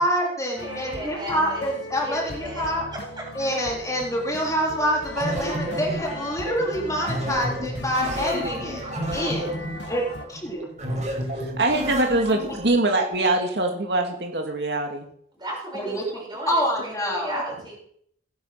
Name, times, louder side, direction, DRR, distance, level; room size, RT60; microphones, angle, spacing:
voice 1, 0.0-2.8 3.3-8.8 9.1-9.5 9.9-10.0 10.3-10.7 15.7-17.5, equal, 20° left, -1 dB, 3.8 m, -26 dB
sound 1, 0.5-10.3, left 2 dB, 80° left, 2.2 m, -38 dB
voice 2, 0.6-1.7 2.0-3.2 15.3-17.8, right 1 dB, 25° right, -2 dB, 6.9 m, -35 dB
sound 2, 5.1-12.7, equal, 40° right, 5.8 m, -31 dB
voice 3, 11.4-15.1, right 2 dB, 65° right, 3 dB, 2.6 m, -23 dB
18.0 x 11.5 x 6.0 m, 0.67 s
head